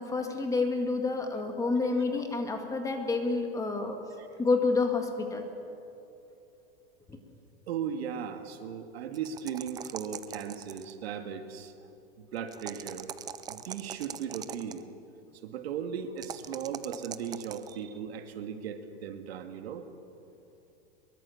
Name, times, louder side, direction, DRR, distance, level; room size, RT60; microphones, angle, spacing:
voice 1, 0.0-4.0 4.4-5.5 7.1-7.2, left 3 dB, 10° left, 4 dB, 1.9 m, -29 dB
voice 2, 7.7-11.7 12.2-13.1 13.5-14.9 15.4-19.9, right 7 dB, 70° right, 7 dB, 2.2 m, -37 dB
sound 1, 9.1-11.0 12.5-14.8 16.2-17.7, right 9 dB, 10° right, 0.4 m, -41 dB
23.0 x 23.0 x 7.2 m, 2.7 s
supercardioid pair, 155°, 32 cm